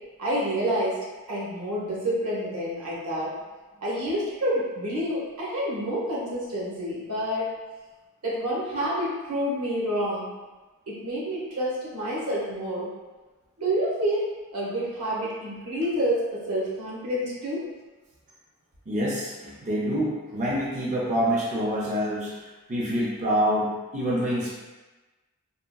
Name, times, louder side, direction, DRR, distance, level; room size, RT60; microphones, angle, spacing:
voice 1, 0.2-3.3 3.8-7.5 8.2-10.3 10.9-12.9 13.6-14.2 14.5-17.6, equal, 90° right, -6 dB, 0.9 m, -28 dB
voice 2, 18.9-24.5, equal, 35° right, -5 dB, 0.4 m, -26 dB
3.5 x 2.1 x 2.2 m, 1.2 s
head